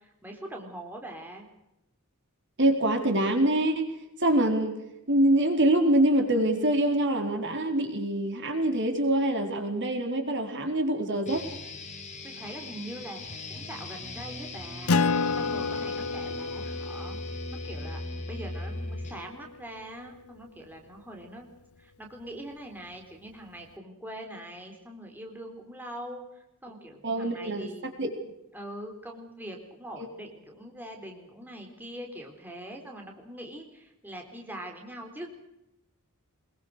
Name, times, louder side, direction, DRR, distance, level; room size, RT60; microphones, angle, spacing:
voice 1, 0.0-1.5 12.2-15.0 15.4-17.2 17.5-21.5 21.8-27.9 28.5-35.3, right 1 dB, 10° right, 2 dB, 3.9 m, -43 dB
voice 2, 2.6-3.9 4.2-4.8 5.1-11.4 27.0-28.1 30.0-30.1, right 1 dB, 55° right, 4 dB, 4.2 m, -25 dB
sound 1, 11.3-19.3, left 2 dB, 35° left, 4.4 m, -39 dB
Acoustic guitar, 14.9-19.8, left 4 dB, 85° left, 0.7 m, -31 dB
23.5 x 22.5 x 6.5 m, 0.86 s
head